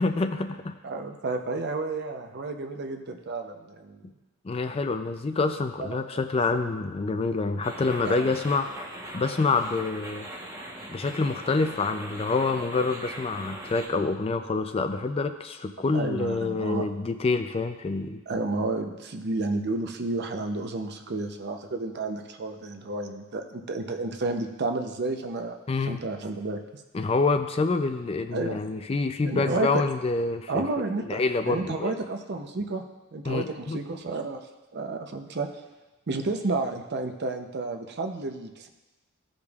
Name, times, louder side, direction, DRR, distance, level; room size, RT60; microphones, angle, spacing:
voice 1, 0.0-0.8 4.4-8.7 9.1-10.3 10.9-18.2 25.7-26.0 26.9-30.7 31.1-32.0 33.3-33.8, left 3 dB, 30° left, 8 dB, 0.4 m, -27 dB
voice 2, 0.8-4.0 5.8-6.2 6.5-6.6 8.0-8.3 15.9-16.9 18.3-25.6 25.9-26.8 28.3-28.6 29.3-29.8 30.5-31.2 31.5-32.8 33.1-34.4 34.7-35.5 36.1-38.7, right 3 dB, 55° right, 5 dB, 0.7 m, -31 dB
sound 1, 7.6-13.9, right 1 dB, 15° right, 1.1 m, -40 dB
15.0 x 5.2 x 2.4 m, 1.1 s
head